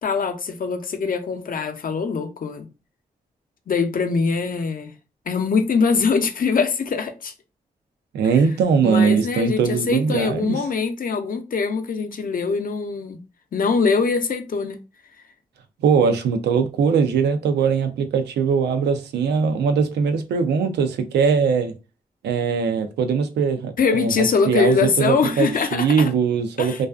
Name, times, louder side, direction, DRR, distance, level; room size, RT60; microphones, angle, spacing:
voice 1, 0.0-2.7 3.7-4.9 5.3-7.3 8.8-13.2 13.5-14.8 23.8-26.1 26.6-26.9, left 5 dB, 55° left, 0.6 m, -23 dB
voice 2, 8.1-10.5 15.8-21.7 22.2-26.9, right 6 dB, 85° right, 0.4 m, -21 dB
2.4 x 2.3 x 2.3 m
supercardioid pair, 40°, 17 cm